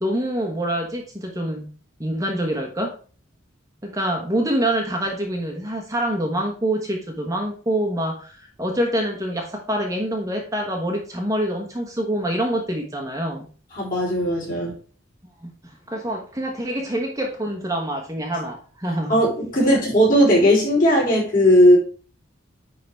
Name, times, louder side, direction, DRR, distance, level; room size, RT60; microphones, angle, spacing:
voice 1, 0.0-1.7 2.0-2.9 3.8-13.4 15.4-15.5 15.9-19.2, right 1 dB, 15° right, 0 dB, 1.1 m, -26 dB
voice 2, 13.7-14.7 19.1-21.8, equal, 40° left, -5 dB, 4.0 m, -17 dB
9.9 x 3.8 x 4.6 m, 0.40 s
head